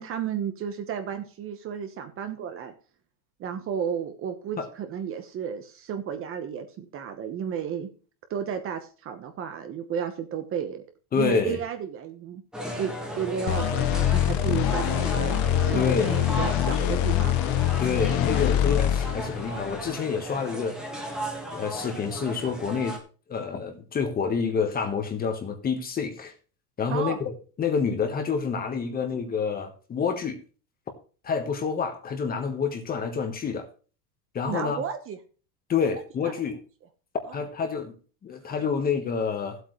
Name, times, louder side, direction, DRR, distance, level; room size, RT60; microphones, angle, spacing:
voice 1, 0.0-2.7 3.4-7.9 8.3-10.8 11.1-12.4 12.8-17.4 26.9-27.2 34.5-35.2 36.2-36.3 37.3-37.4, right 8 dB, 30° right, 8 dB, 1.1 m, -33 dB
voice 2, 11.1-11.6 15.7-16.1 17.8-20.8 21.5-23.0 23.3-26.3 26.8-30.4 31.2-33.7 34.3-34.8 35.7-36.6 37.3-37.9 38.2-39.6, left 6 dB, 20° left, 7 dB, 1.3 m, -28 dB
sound 1, 12.5-23.0, equal, ahead, 1.7 m, -35 dB
sound 2, 13.5-19.9, left 12 dB, 40° left, 0.7 m, -25 dB
15.5 x 8.1 x 3.2 m, 0.38 s
cardioid pair, 165°, 44 cm